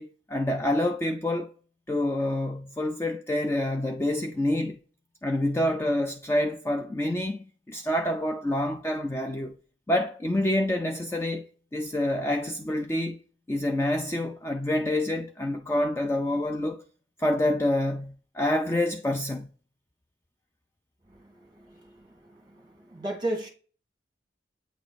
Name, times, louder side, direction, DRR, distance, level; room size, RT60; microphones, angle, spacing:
voice 1, 0.0-1.5 1.9-4.8 5.2-9.6 9.9-11.5 11.7-13.2 13.5-16.8 17.2-19.5, left 1 dB, 15° left, 0.3 m, -27 dB
voice 2, 21.3-22.1 22.5-23.5, right 1 dB, 25° right, 1.3 m, -34 dB
8.2 x 2.9 x 4.1 m
head